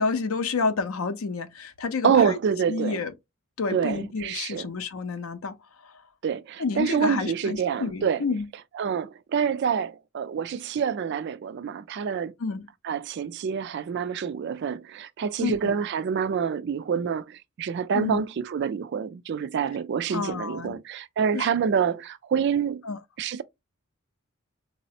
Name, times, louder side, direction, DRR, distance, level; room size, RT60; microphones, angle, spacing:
voice 1, 0.0-2.4 2.7-3.1 3.6-5.6 5.8-5.9 6.6-8.5 12.4-12.6 15.4-15.6 17.9-18.2 20.1-20.8 21.3-21.5 22.8-23.0, left 4 dB, 80° left, 0.5 m, -29 dB
voice 2, 2.0-3.0 3.7-4.7 6.2-8.2 8.7-12.3 12.8-22.8 23.2-23.4, right 7 dB, 55° right, 0.3 m, -27 dB
3.9 x 2.0 x 2.7 m
head